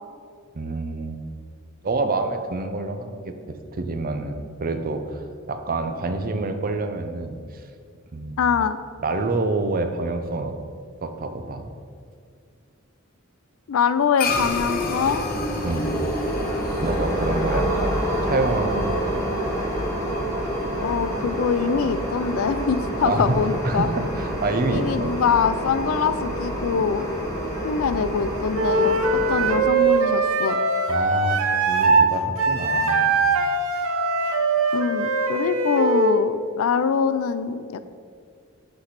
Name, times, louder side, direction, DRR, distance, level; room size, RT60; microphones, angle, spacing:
voice 1, 0.5-1.2 1.8-7.6 8.1-8.4 9.0-10.5 11.0-11.7 15.6-15.9 16.8-19.2 23.0-23.3 23.6-25.1 30.9-33.3, right 3 dB, 45° right, 7 dB, 0.5 m, -27 dB
voice 2, 8.4-8.8 13.7-15.3 17.5-17.6 20.8-23.9 24.7-27.1 27.6-29.0 29.3-30.6 34.7-37.9, left 6 dB, 80° left, 13 dB, 0.4 m, -24 dB
sound 1, 14.2-18.8, left 4 dB, 45° left, 0.7 m, -31 dB
sound 2, 14.6-29.6, right 1 dB, 15° left, 1.4 m, -27 dB
Wind instrument woodwind instrument, 28.5-32.1 32.4-36.2, right 3 dB, 80° right, 0.7 m, -21 dB
8.2 x 3.3 x 5.8 m, 2.2 s
head